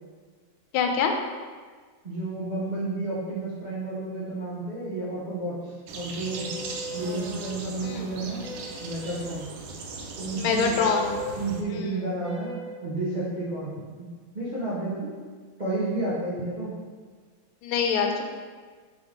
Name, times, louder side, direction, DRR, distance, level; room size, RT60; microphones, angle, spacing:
voice 1, 0.7-1.1 7.8-8.1 10.4-11.2 11.7-12.0 17.6-18.2, left 6 dB, 90° left, 3 dB, 1.4 m, -25 dB
voice 2, 2.0-6.5 6.9-8.5 8.8-9.5 10.2-10.8 11.3-13.7 14.0-14.1 14.3-15.1 15.6-16.7, right 2 dB, 60° right, -10 dB, 0.4 m, -31 dB
sound 1, 5.9-11.6, right 4 dB, 90° right, 1.4 m, -38 dB
sound 2, 6.3-7.2 8.4-9.0 10.7-11.4 12.2-12.8, equal, 50° left, 1.4 m, -38 dB
3.8 x 3.5 x 3.6 m, 1.5 s
omnidirectional pair, 2.2 m